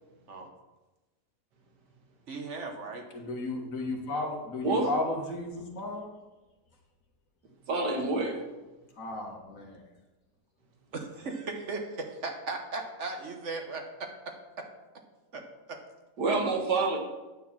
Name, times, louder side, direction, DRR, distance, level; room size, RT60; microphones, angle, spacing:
voice 1, 2.3-3.1 10.9-14.7 15.3-15.4 15.7-15.8, right 3 dB, 50° right, 4 dB, 1.2 m, -37 dB
voice 2, 3.1-6.1 9.0-9.8, left 2 dB, 55° left, 1 dB, 1.7 m, -34 dB
voice 3, 7.7-8.4 16.2-17.0, right 3 dB, 85° right, 2 dB, 1.9 m, -27 dB
9.3 x 4.5 x 7.3 m, 1.1 s
omnidirectional pair, 1.8 m